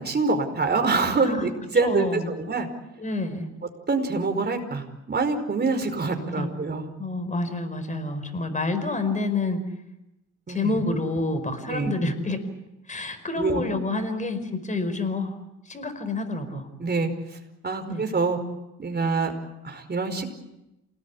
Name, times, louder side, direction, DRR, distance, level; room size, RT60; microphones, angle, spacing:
voice 1, 0.0-2.7 3.9-6.9 10.5-10.8 11.7-11.9 13.4-13.6 16.8-17.1 17.6-18.4 18.8-19.3 19.6-20.3, right 4 dB, 35° right, 6 dB, 4.9 m, -25 dB
voice 2, 1.8-2.4 3.0-3.4 6.4-6.5 7.0-9.6 10.5-12.4 12.9-15.3 15.7-16.7 17.9-18.0, left 2 dB, 25° left, 8 dB, 5.0 m, -28 dB
28.0 x 19.0 x 8.5 m, 0.92 s
cardioid pair, 90°, 30 cm